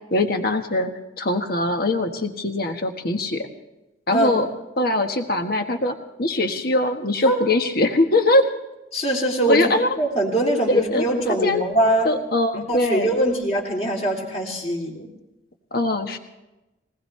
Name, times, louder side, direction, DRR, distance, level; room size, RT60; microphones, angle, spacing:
voice 1, 0.1-0.9 1.2-3.5 4.1-4.5 4.8-8.5 9.5-9.9 10.7-11.0 11.4-11.6 12.0-13.1 15.7-16.2, left 2 dB, 50° left, 5 dB, 1.4 m, -21 dB
voice 2, 4.1-4.4 7.2-7.4 8.9-9.7 10.0-12.1 12.7-15.1, right 1 dB, 35° left, 0 dB, 3.0 m, -22 dB
21.0 x 19.5 x 3.3 m, 0.99 s
head